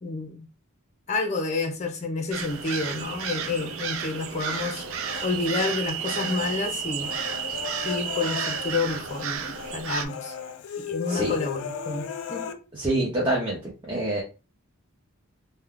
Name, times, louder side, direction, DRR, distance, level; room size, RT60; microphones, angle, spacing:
voice 1, 0.0-0.5 1.1-4.8 5.2-7.1 7.8-10.3 10.8-12.6, left 3 dB, 30° left, 5 dB, 0.5 m, -29 dB
sound 1, 2.3-10.1, right 7 dB, 65° right, 0.3 m, -32 dB
Human voice, 4.5-5.7 6.0-9.3 9.5-9.8 10.1-12.5, left 7 dB, 90° left, 0.4 m, -36 dB
voice 2, 12.7-13.6 13.9-14.2, right 1 dB, 20° right, -4 dB, 0.6 m, -25 dB
2.2 x 2.2 x 3.5 m, 0.32 s
head